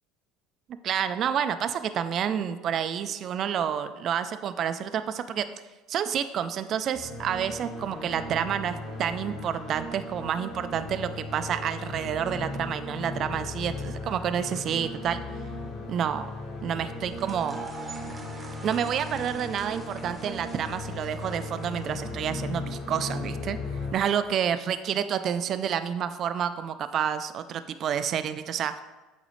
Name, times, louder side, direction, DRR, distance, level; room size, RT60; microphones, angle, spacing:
voice 1, 0.8-5.5 5.9-15.2 15.9-16.3 16.6-17.6 18.6-23.6 23.9-28.8, right 8 dB, 45° right, 11 dB, 0.3 m, -29 dB
sound 1, 6.9-23.9, left 2 dB, 50° left, 1.9 m, -37 dB
sound 2, 17.1-23.1, right 4 dB, 20° right, 0.7 m, -46 dB
8.1 x 3.9 x 3.1 m, 1.2 s
supercardioid pair, 115°, 0 cm